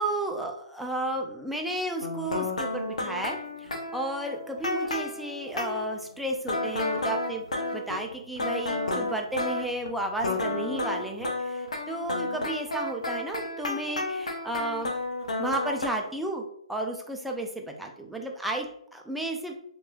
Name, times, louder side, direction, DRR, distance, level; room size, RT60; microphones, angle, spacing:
voice 1, 0.0-7.4 7.7-14.9 15.4-19.6, right 1 dB, ahead, 1 dB, 0.3 m, -33 dB
sound 1, 2.0-5.9 6.5-9.9 10.2-15.9, left 2 dB, 85° left, 0.7 m, -31 dB
3.0 x 2.9 x 2.2 m, 0.71 s
hypercardioid pair, 145°, 4 cm